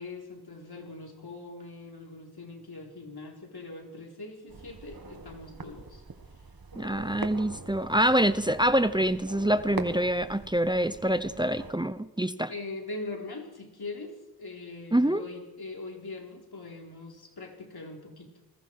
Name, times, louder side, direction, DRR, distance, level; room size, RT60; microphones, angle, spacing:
voice 1, 0.0-6.0 12.5-14.1 14.4-18.3, left 3 dB, 75° left, 1 dB, 4.3 m, -41 dB
sound 1, 4.5-11.7, right 4 dB, 65° right, 2.1 m, -42 dB
voice 2, 6.8-12.5 14.9-15.2, right 1 dB, 10° right, 13 dB, 0.9 m, -26 dB
27.5 x 21.0 x 4.8 m, 1.0 s
wide cardioid pair, 55°, 38 cm